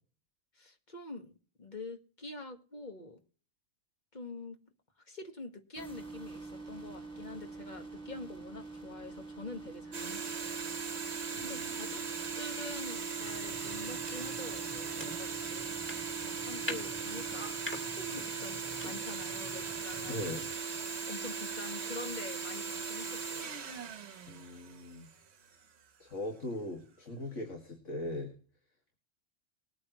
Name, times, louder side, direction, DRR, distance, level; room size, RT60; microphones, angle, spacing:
voice 1, 0.5-1.3 1.6-3.2 4.1-4.6 5.0-10.7 11.4-12.0 12.4-15.7 16.2-20.3 20.8-23.5, left 2 dB, 40° left, 5 dB, 1.8 m, -46 dB
sound 1, 5.8-17.5, right 3 dB, 10° right, 2.3 m, -47 dB
sound 2, 9.9-25.1, right 6 dB, 65° right, 1.2 m, -39 dB
voice 2, 11.4-12.0 20.1-20.5 24.3-25.1 26.0-28.3, left 1 dB, 75° left, 2 dB, 2.5 m, -40 dB
sound 3, 13.2-20.6, equal, 10° left, 2.3 m, -46 dB
21.5 x 8.6 x 3.1 m, 0.41 s
omnidirectional pair, 1.3 m